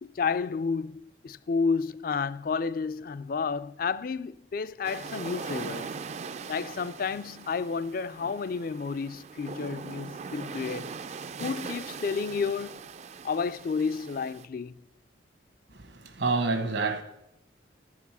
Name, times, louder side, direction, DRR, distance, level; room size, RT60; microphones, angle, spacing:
voice 1, 0.0-5.9 6.5-10.9 11.4-12.8 13.2-14.8, left 5 dB, 50° left, 0.4 m, -31 dB
sound 1, 4.8-14.5, right 5 dB, 35° right, 0.4 m, -40 dB
voice 2, 15.8-17.0, right 3 dB, 70° right, 1.3 m, -28 dB
13.5 x 4.9 x 8.2 m
head